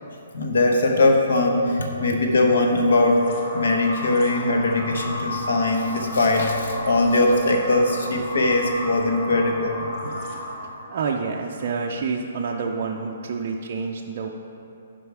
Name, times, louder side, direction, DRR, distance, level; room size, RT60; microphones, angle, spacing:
voice 1, 0.3-3.3 3.5-10.1, left 2 dB, 70° left, 2 dB, 0.8 m, -21 dB
sound 1, 2.8-10.9, left 1 dB, 25° left, 1.0 m, -34 dB
voice 2, 10.9-14.3, right 5 dB, 35° right, 0 dB, 0.4 m, -28 dB
8.1 x 5.4 x 4.7 m, 2.8 s
hypercardioid pair, 175°, 0 cm